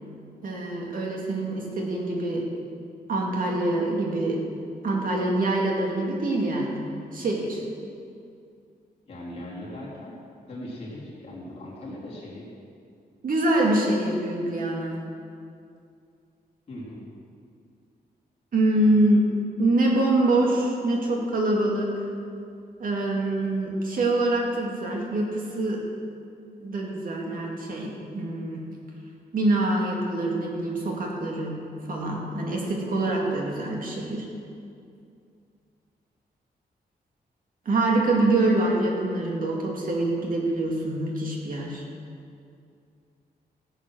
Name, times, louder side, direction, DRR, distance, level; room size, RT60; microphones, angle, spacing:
voice 1, 0.4-2.5 3.1-4.4 4.8-7.6 13.2-15.0 18.5-19.3 19.6-21.9 22.8-25.8 26.6-28.7 29.3-34.3 37.7-41.8, right 2 dB, 60° right, -1 dB, 2.1 m, -25 dB
voice 2, 9.0-10.2 10.5-12.5 16.7-17.1, left 1 dB, 40° left, -7 dB, 3.6 m, -39 dB
15.0 x 8.0 x 6.3 m, 2.4 s
wide cardioid pair, 180°, 16 cm